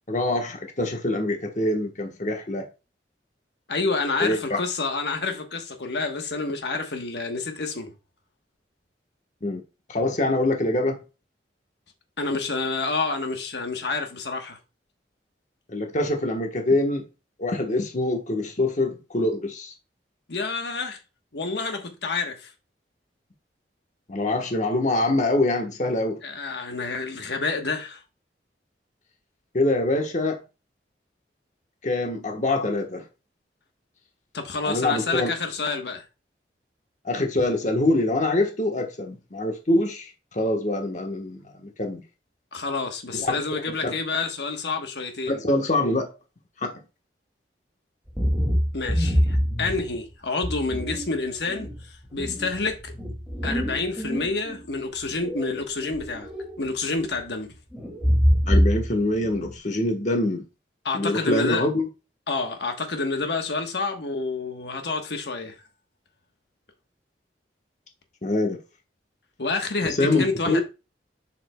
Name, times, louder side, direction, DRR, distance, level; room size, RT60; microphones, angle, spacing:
voice 1, 0.1-2.6 4.2-4.6 9.4-9.6 9.9-11.0 15.7-17.0 17.4-19.7 24.1-26.2 29.5-30.4 31.8-33.0 34.7-35.3 37.0-42.0 43.1-43.9 45.3-46.1 46.6-46.8 58.5-60.4 60.9-61.9 68.2-68.6 69.8-70.6, left 2 dB, 45° left, 1.2 m, -24 dB
voice 2, 3.7-7.9 12.2-14.6 20.3-21.0 21.3-22.5 26.2-28.0 34.3-36.1 42.5-45.4 48.7-52.9 53.4-56.3 56.6-57.5 60.8-61.6 62.3-65.6 69.4-70.6, left 3 dB, 70° left, 1.2 m, -28 dB
sound 1, 48.1-50.0 50.4-51.1 51.5-54.6 55.0-56.6 56.8-57.2 57.7-58.9 59.2-59.6, equal, 5° right, 2.3 m, -25 dB
7.3 x 6.9 x 2.2 m
head